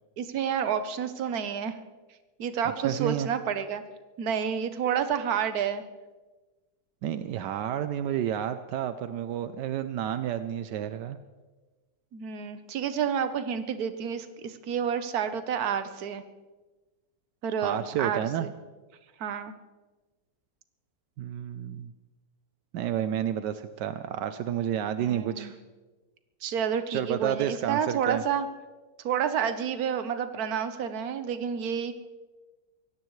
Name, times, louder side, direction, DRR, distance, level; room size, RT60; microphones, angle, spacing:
voice 1, 0.2-1.8 2.4-3.8 4.2-5.8 12.1-16.2 17.4-18.5 19.2-19.5 25.0-25.5 26.4-28.5 29.0-31.9, right 8 dB, 65° right, 10 dB, 1.4 m, -29 dB
voice 2, 2.8-3.3 7.0-11.2 17.6-18.5 21.2-21.9 22.7-25.6 26.9-28.2, right 10 dB, 80° right, 10 dB, 1.3 m, -30 dB
24.5 x 17.0 x 3.2 m, 1.2 s
omnidirectional pair, 1.8 m